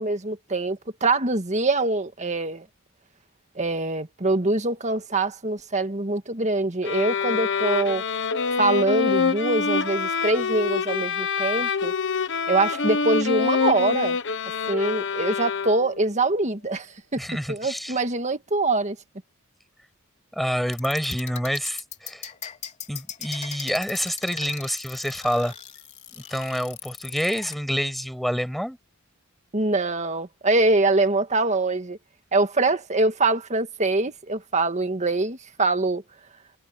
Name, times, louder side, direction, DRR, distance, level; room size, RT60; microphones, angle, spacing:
voice 1, 0.0-2.7 3.6-8.0 8.6-11.9 12.5-14.2 14.7-16.9 17.1-17.2 17.5-19.0 29.5-32.0 32.3-36.0, right 2 dB, 30° right, 1.8 m, -24 dB
sound 1, 6.8-16.0, left 5 dB, 55° left, 1.2 m, -25 dB
voice 2, 17.2-18.0 20.3-22.2 22.9-25.5 26.1-28.8, equal, ahead, 7.9 m, -27 dB
sound 2, 20.7-27.5, left 8 dB, 30° left, 3.5 m, -38 dB
head